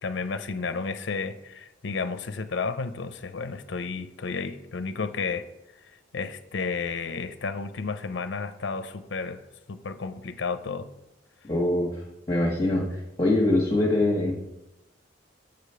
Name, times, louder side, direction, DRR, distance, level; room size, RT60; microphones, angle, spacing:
voice 1, 0.0-5.5 6.1-9.4 9.7-10.9, left 4 dB, 65° left, 11 dB, 0.5 m, -32 dB
voice 2, 11.4-11.9 12.3-12.9 13.2-14.3, left 1 dB, 20° left, -4 dB, 1.3 m, -23 dB
8.0 x 5.0 x 6.7 m, 0.93 s
head